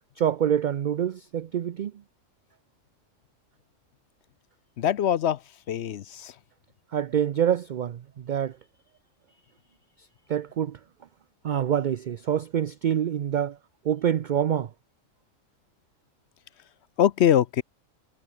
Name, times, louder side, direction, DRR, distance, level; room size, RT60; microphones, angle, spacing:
voice 1, 0.2-1.9 6.9-8.5 10.3-10.8 11.4-13.6 13.8-14.7, right 9 dB, 60° right, 0.5 m, -26 dB
voice 2, 4.8-5.4 5.7-6.3 17.0-17.6, left 10 dB, 65° left, 0.9 m, -23 dB
omnidirectional pair, 1.4 m